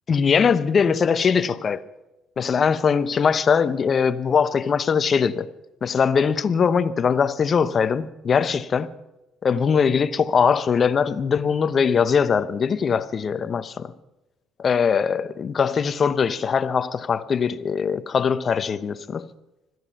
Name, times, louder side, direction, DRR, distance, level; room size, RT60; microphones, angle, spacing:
voice 1, 0.1-1.8 2.4-5.5 5.8-8.9 9.4-13.9 14.6-19.2, left 6 dB, 45° left, 0.9 m, -21 dB
25.5 x 9.6 x 5.7 m
hypercardioid pair, 55°, 0 cm